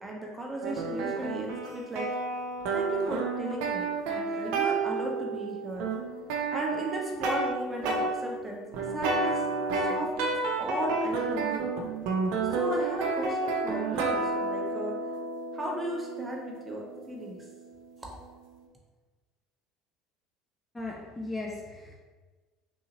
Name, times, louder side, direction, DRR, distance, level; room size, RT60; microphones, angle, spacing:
voice 1, 0.0-2.1 2.7-5.9 6.5-9.4 9.7-11.7 12.4-14.9 15.5-17.5, right 1 dB, 15° right, -1 dB, 0.9 m, -36 dB
sound 1, 0.6-7.5 7.8-8.1 8.7-17.8, right 3 dB, 70° right, 0.5 m, -31 dB
voice 2, 20.7-21.9, left 2 dB, 15° left, -2 dB, 0.6 m, -37 dB
3.8 x 2.7 x 3.0 m, 1.3 s
hypercardioid pair, 85°, 0 cm